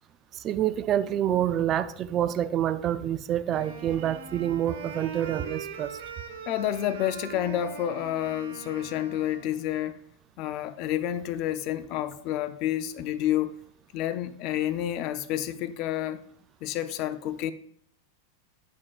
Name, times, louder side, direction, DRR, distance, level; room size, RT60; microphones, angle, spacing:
voice 1, 0.3-6.0, right 11 dB, 35° right, 0.3 m, -27 dB
Wind instrument woodwind instrument, 3.5-9.7, right 6 dB, 75° right, 0.9 m, -41 dB
voice 2, 6.5-10.0 10.4-13.6 13.9-16.2 16.6-17.5, left 12 dB, 50° left, 0.5 m, -29 dB
11.0 x 3.7 x 2.4 m
hypercardioid pair, 120°, 0 cm